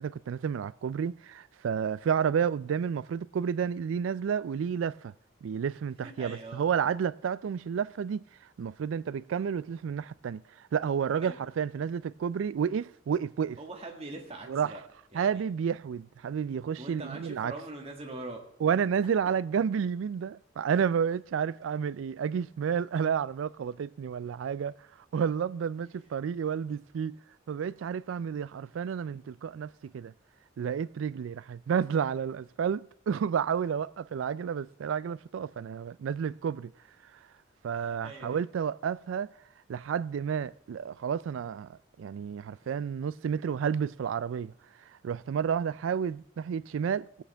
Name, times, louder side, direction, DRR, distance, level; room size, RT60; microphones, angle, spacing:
voice 1, 0.0-5.1 5.4-8.2 8.6-10.4 10.7-13.6 14.5-14.7 15.1-17.5 18.6-24.8 25.1-27.2 27.5-30.1 30.6-36.7 37.6-39.3 39.7-44.5 45.0-47.2, right 7 dB, 85° right, 0.3 m, -31 dB
voice 2, 6.0-6.6 11.2-11.4 13.6-14.8 15.1-15.4 16.8-18.5 37.7-38.4 42.6-42.7, right 2 dB, 30° right, 1.8 m, -42 dB
18.0 x 8.5 x 3.4 m
head